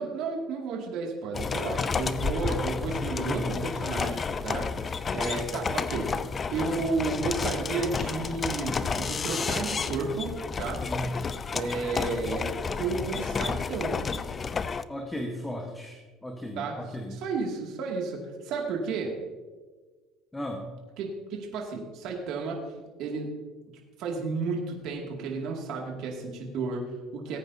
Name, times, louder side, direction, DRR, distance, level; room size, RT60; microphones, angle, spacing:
voice 1, 0.0-4.7 5.1-6.1 6.5-10.8 11.5-12.5 12.8-14.1 16.6-16.8 17.1-19.1 21.0-22.6 23.0-23.3 24.0-27.4, right 4 dB, 65° right, 0 dB, 2.3 m, -32 dB
sound 1, 1.3-14.8, left 5 dB, 30° left, 0.5 m, -31 dB
voice 2, 3.0-3.7 10.8-11.2 14.9-17.2 20.3-20.6, equal, 10° left, 2 dB, 1.3 m, -35 dB
18.5 x 9.0 x 2.8 m, 1.3 s
cardioid pair, 110°, 0 cm